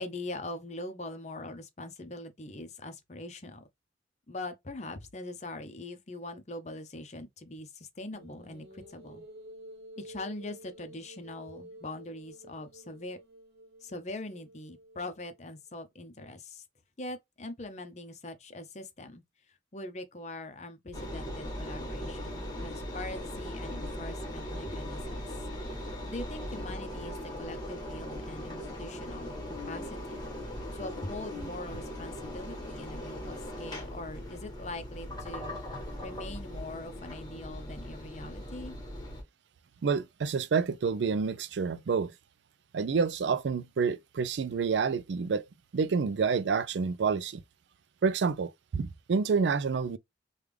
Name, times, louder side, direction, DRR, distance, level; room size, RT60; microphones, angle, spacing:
voice 1, 0.0-3.6 4.3-9.3 10.0-13.2 13.8-16.6 17.0-19.2 19.5-25.3 26.1-30.2 30.7-35.6 36.0-38.8, left 2 dB, 40° left, 0.7 m, -42 dB
sound 1, 8.1-15.5, right 1 dB, 60° right, 1.0 m, -51 dB
Engine, 20.9-39.2, left 1 dB, 25° left, 1.3 m, -39 dB
voice 2, 39.8-42.1 42.7-45.5 45.7-47.4 48.0-50.0, right 5 dB, 80° right, 0.4 m, -28 dB
3.5 x 2.3 x 3.2 m
head